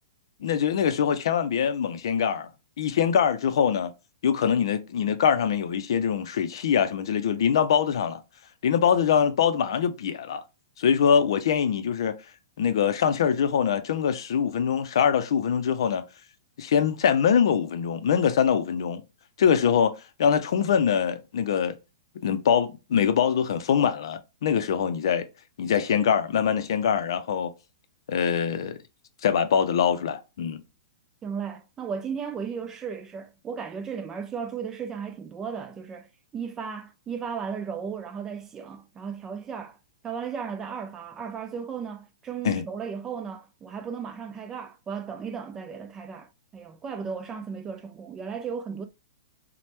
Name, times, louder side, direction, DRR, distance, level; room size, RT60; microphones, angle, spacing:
voice 1, 0.4-2.5 2.8-3.9 4.2-8.2 8.6-10.4 10.8-12.1 12.6-16.0 16.6-19.0 19.4-19.9 20.2-21.8 22.2-25.3 25.6-27.5 28.1-28.8 29.2-30.6 42.4-42.6, left 7 dB, 65° left, 0.5 m, -23 dB
voice 2, 31.2-36.1 36.3-39.8 40.0-48.8, right 6 dB, 15° right, 0.3 m, -35 dB
3.1 x 2.1 x 2.8 m
hypercardioid pair, 155°, 3 cm